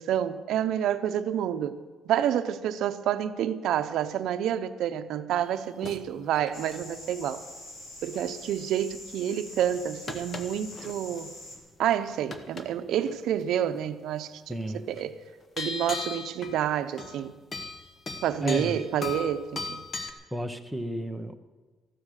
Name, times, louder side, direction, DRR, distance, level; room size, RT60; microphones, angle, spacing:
voice 1, 0.0-1.8 2.0-7.4 8.0-11.3 11.8-15.1 15.6-17.3 18.2-19.8, right 10 dB, 65° right, 0.8 m, -29 dB
sound 1, 5.3-6.1 6.3-6.9 8.1-8.2 9.6-11.2 11.5-11.9 12.3-12.7 12.9-13.2 14.9-15.0 15.6-16.6 17.0-17.2 17.5-20.1, left 4 dB, 25° left, 0.9 m, -38 dB
sound 2, 6.5-11.6, left 2 dB, 45° left, 2.9 m, -45 dB
voice 2, 14.5-14.9 18.4-18.8 20.3-21.4, equal, ahead, 0.7 m, -32 dB
14.0 x 12.5 x 6.4 m
cardioid pair, 170°, 0 cm